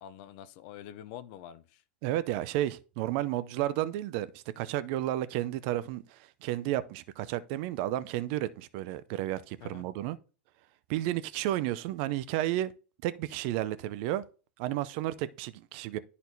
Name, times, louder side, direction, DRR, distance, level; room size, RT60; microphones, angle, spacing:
voice 1, 0.0-1.8 9.6-9.9, left 11 dB, 55° left, 0.5 m, -46 dB
voice 2, 2.0-4.3 4.6-10.2 10.9-12.7 13.0-14.2 14.6-16.0, right 14 dB, 55° right, 0.5 m, -32 dB
10.5 x 4.1 x 2.7 m
hypercardioid pair, 105°, 7 cm